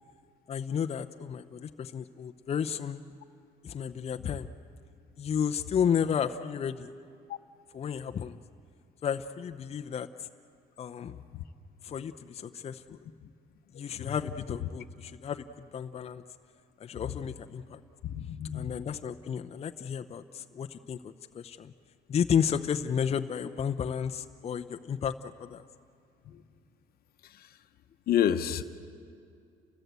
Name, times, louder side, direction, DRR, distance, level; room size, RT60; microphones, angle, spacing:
voice 1, 0.5-3.0 3.6-4.5 5.2-6.9 7.7-8.4 9.0-10.3 10.8-11.2 11.8-13.0 13.7-16.2 16.8-17.8 18.5-21.7 22.1-25.6, left 7 dB, 35° left, 6 dB, 0.7 m, -32 dB
voice 2, 13.7-14.2 17.0-17.1 18.0-18.7 26.2-26.4 27.2-27.5 28.1-28.6, left 10 dB, 65° left, 9 dB, 1.0 m, -30 dB
29.5 x 17.5 x 8.2 m, 2.4 s
cardioid pair, 110°, 17 cm